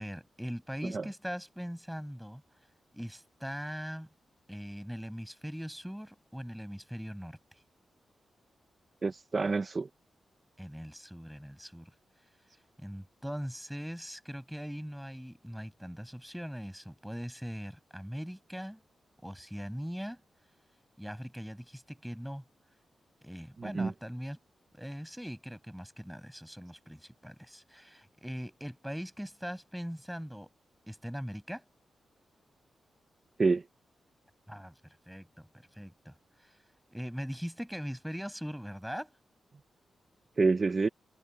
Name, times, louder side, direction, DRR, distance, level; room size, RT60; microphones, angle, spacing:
voice 1, 0.0-2.4 2.9-4.1 4.5-7.4 10.6-11.9 12.8-18.8 19.2-20.2 21.0-22.4 23.2-24.4 24.7-30.5 30.9-31.6 34.5-36.6 36.9-39.1, equal, ahead, 7.0 m, -41 dB
voice 2, 9.0-9.9 23.6-23.9 33.4-33.6 40.4-40.9, right 4 dB, 40° right, 0.5 m, -27 dB
cardioid pair, 95°, 0 cm